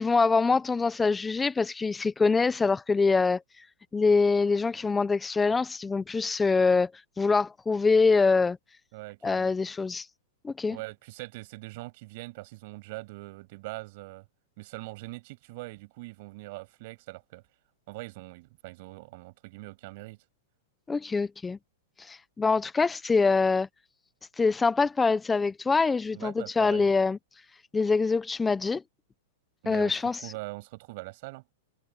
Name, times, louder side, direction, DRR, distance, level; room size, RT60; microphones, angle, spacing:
voice 1, 0.0-3.4 3.9-6.9 7.2-8.6 9.2-10.1 10.4-10.8 20.9-21.6 22.0-23.7 24.4-27.2 27.7-28.8 29.7-30.2, left 4 dB, 10° left, 0.9 m, -24 dB
voice 2, 8.9-9.5 10.7-14.3 14.6-17.4 17.9-20.2 26.1-26.9 29.6-31.4, right 23 dB, 55° right, 7.2 m, -42 dB
hypercardioid pair, 120°, 0 cm